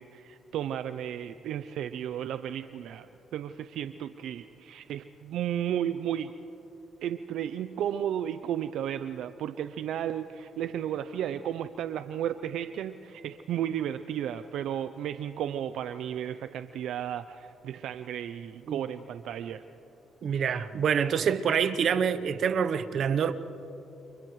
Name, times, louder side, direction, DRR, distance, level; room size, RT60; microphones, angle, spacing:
voice 1, 0.0-6.3 7.0-19.6, right 10 dB, 80° right, 0.5 m, -33 dB
voice 2, 20.2-23.3, right 7 dB, 60° right, 0.9 m, -26 dB
30.0 x 29.0 x 3.2 m
cardioid pair, 90°, 0 cm